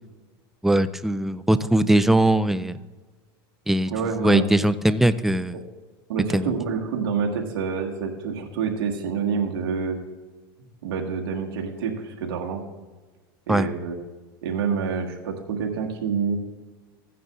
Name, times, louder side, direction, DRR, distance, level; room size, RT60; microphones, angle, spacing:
voice 1, 0.6-2.8 3.7-3.9 4.2-5.6 6.3-6.5 13.5-13.7, right 1 dB, ahead, 13 dB, 0.3 m, -20 dB
voice 2, 3.9-4.5 6.1-10.0 10.8-12.6 13.5-13.9 14.4-16.4, right 6 dB, 75° right, 1 dB, 1.6 m, -27 dB
15.0 x 9.3 x 2.4 m, 1.3 s
supercardioid pair, 110°, 13 cm